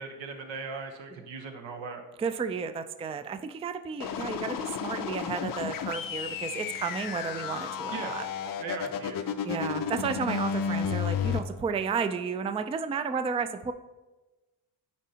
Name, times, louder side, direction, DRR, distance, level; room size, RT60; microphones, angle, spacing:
voice 1, 0.0-2.0 7.9-8.2 8.6-9.3, right 5 dB, 85° right, 3 dB, 1.0 m, -39 dB
voice 2, 2.2-8.3 9.4-13.7, right 5 dB, 15° right, 10 dB, 0.3 m, -32 dB
sound 1, 4.0-11.4, left 7 dB, 50° left, 0.6 m, -32 dB
9.7 x 4.0 x 2.8 m, 1.1 s
supercardioid pair, 60°, 44 cm